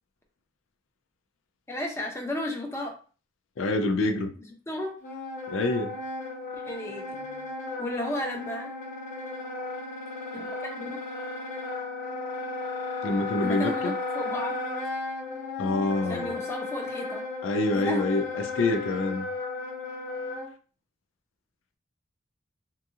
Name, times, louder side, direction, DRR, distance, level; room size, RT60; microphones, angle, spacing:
voice 1, 1.7-2.9 4.5-5.0 6.5-7.5 7.8-8.7 10.3-11.0 13.4-14.5 16.0-17.3 17.7-18.2, left 1 dB, 15° left, 0.7 m, -34 dB
voice 2, 3.6-4.3 5.5-5.9 13.0-13.9 15.6-16.4 17.4-19.3, left 2 dB, 85° left, 0.4 m, -26 dB
Wind instrument woodwind instrument, 5.0-20.5, left 3 dB, 45° left, 0.9 m, -35 dB
3.7 x 2.4 x 2.8 m
head